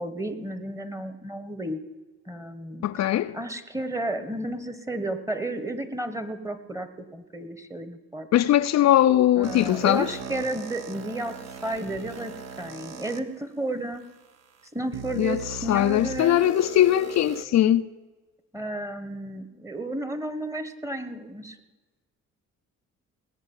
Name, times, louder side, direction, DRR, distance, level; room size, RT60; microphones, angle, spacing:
voice 1, 0.0-1.8 2.3-8.3 9.4-11.3 11.6-12.3 12.6-14.0 14.7-16.4 18.5-21.6, right 1 dB, 10° right, 1.3 m, -32 dB
voice 2, 2.8-3.4 8.3-10.1 15.2-17.8, left 12 dB, 60° left, 0.5 m, -21 dB
sound 1, 9.4-13.2 13.9-14.0 14.9-17.4, right 5 dB, 60° right, 1.1 m, -39 dB
19.0 x 6.5 x 8.9 m
cardioid pair, 90°, 30 cm